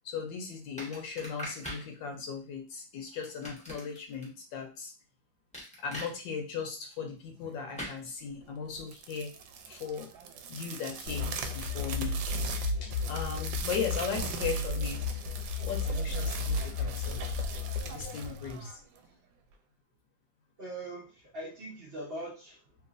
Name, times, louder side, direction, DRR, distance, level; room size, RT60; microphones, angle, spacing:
voice 1, 0.0-4.9 5.8-9.3 9.7-10.1 10.5-12.2 12.8-15.0 15.6-17.5 17.9-18.8, left 6 dB, 80° left, 3 dB, 1.3 m, -37 dB
sound 1, 0.8-1.9 3.2-4.2 5.5-6.1 7.8-8.0, equal, 5° left, 0.6 m, -41 dB
sound 2, 8.8-19.1, right 6 dB, 90° right, 1.3 m, -41 dB
sound 3, 11.1-18.7, left 4 dB, 65° left, 0.9 m, -34 dB
voice 2, 20.6-22.8, right 1 dB, 70° right, -4 dB, 0.5 m, -42 dB
3.1 x 2.9 x 2.5 m, 0.35 s
omnidirectional pair, 2.0 m